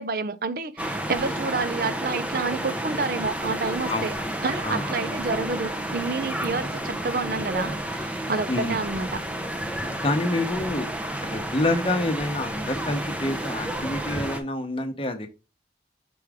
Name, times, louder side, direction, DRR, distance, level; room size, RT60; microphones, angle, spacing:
voice 1, 0.0-4.1 4.4-9.2, right 4 dB, 50° right, 0.6 m, -29 dB
sound 1, 0.8-14.4, right 1 dB, 5° right, 0.7 m, -31 dB
voice 2, 3.9-4.3 4.6-4.9 8.5-8.8 9.8-10.9 11.2-15.3, left 2 dB, 30° left, 1.0 m, -27 dB
6.1 x 4.8 x 3.5 m
head